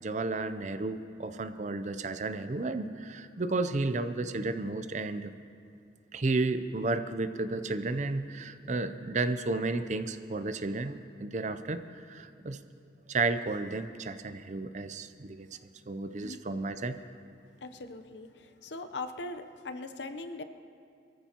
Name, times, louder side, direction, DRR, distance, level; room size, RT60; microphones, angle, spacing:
voice 1, 0.0-5.3 6.1-12.6 13.1-15.6 15.9-17.0, right 3 dB, 40° right, 11 dB, 0.5 m, -32 dB
voice 2, 17.6-18.3 18.6-20.4, left 3 dB, 80° left, 9 dB, 0.8 m, -40 dB
23.0 x 14.5 x 2.9 m, 2.4 s
head